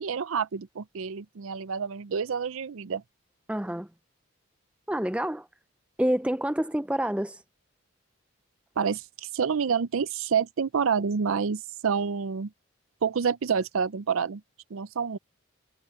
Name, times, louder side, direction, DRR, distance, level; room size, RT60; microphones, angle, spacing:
voice 1, 0.0-3.0 8.8-12.5 13.0-14.4 14.7-15.2, right 6 dB, 75° right, 0.5 m, -28 dB
voice 2, 3.5-3.9 4.9-5.5 6.0-7.4, right 1 dB, 5° right, 0.5 m, -27 dB
head